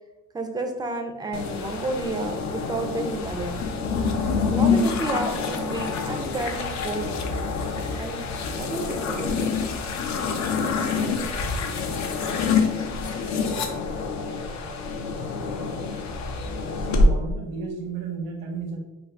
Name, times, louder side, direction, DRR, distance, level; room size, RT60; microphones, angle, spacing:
voice 1, 0.3-3.6 4.5-7.1 8.0-8.2 8.5-9.6, right 2 dB, 15° right, 4 dB, 0.4 m, -31 dB
sound 1, 1.3-17.1, left 4 dB, 60° left, 0.5 m, -26 dB
voice 2, 16.1-16.4 16.7-18.8, right 4 dB, 90° right, 1 dB, 0.7 m, -34 dB
2.5 x 2.3 x 3.2 m, 1.0 s
cardioid pair, 95°, 32 cm